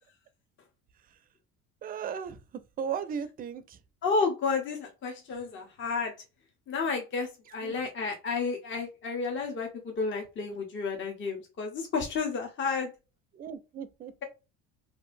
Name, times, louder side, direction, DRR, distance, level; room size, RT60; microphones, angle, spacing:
voice 1, 1.8-2.4 2.8-3.8 7.6-7.7 13.3-14.2, right 7 dB, 30° right, 0.4 m, -36 dB
voice 2, 4.0-6.1 6.7-12.9, left 4 dB, 40° left, 0.7 m, -31 dB
2.7 x 2.5 x 2.5 m
supercardioid pair, 80°, 30 cm